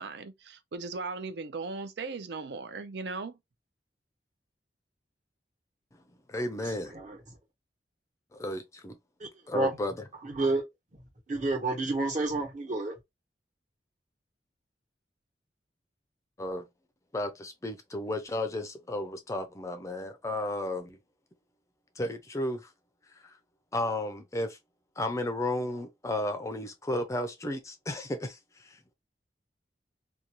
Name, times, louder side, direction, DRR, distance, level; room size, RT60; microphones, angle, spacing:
voice 1, 0.0-3.4, right 4 dB, 70° right, 0.5 m, -38 dB
voice 2, 6.3-6.9 8.3-9.0 9.5-10.1 16.4-16.6 17.1-21.0 22.0-22.7 23.2-23.4 23.7-24.6 25.0-28.9, left 1 dB, 15° left, 0.4 m, -33 dB
voice 3, 10.2-10.6 11.3-12.9, right 2 dB, 45° right, 1.1 m, -29 dB
2.6 x 2.2 x 3.0 m
head